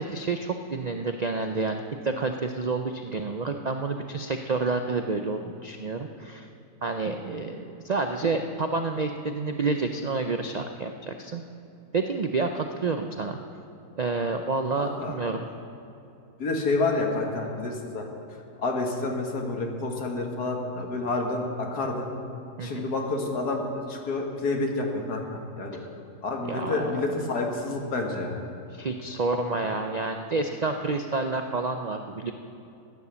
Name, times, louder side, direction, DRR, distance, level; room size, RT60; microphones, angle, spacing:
voice 1, 0.0-6.5 6.8-11.4 11.9-13.4 14.0-15.5 22.6-22.9 26.5-27.0 28.7-32.3, right 3 dB, 75° right, 5 dB, 0.3 m, -29 dB
voice 2, 14.8-15.1 16.4-18.1 18.6-22.1 22.6-25.8 26.2-28.3, left 3 dB, 90° left, 2 dB, 2.2 m, -29 dB
15.0 x 9.9 x 6.9 m, 2.8 s
omnidirectional pair, 1.6 m